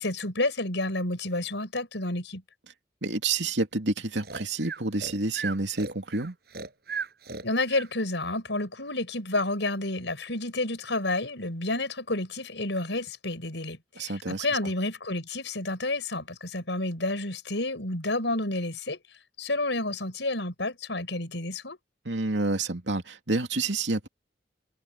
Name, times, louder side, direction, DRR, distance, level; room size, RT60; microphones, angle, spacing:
voice 1, 0.0-2.4 7.4-19.0 19.4-21.8, left 2 dB, 85° left, 5.5 m, -30 dB
voice 2, 3.0-6.4 14.0-14.4 22.0-24.1, right 3 dB, 85° right, 2.8 m, -29 dB
Breathing, 4.2-7.9, right 5 dB, 60° right, 7.3 m, -37 dB
head